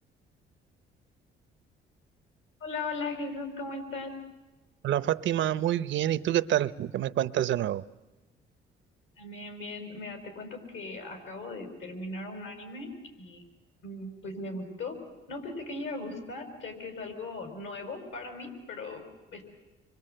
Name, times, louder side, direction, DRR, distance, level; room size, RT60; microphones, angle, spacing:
voice 1, 2.6-4.2 9.2-13.4 13.8-15.0 15.3-19.0 19.3-19.4, left 3 dB, 75° left, 6 dB, 5.0 m, -38 dB
voice 2, 4.8-7.8, right 12 dB, 75° right, 15 dB, 0.8 m, -27 dB
27.5 x 23.5 x 7.9 m, 1.1 s
cardioid pair, 90°, 20 cm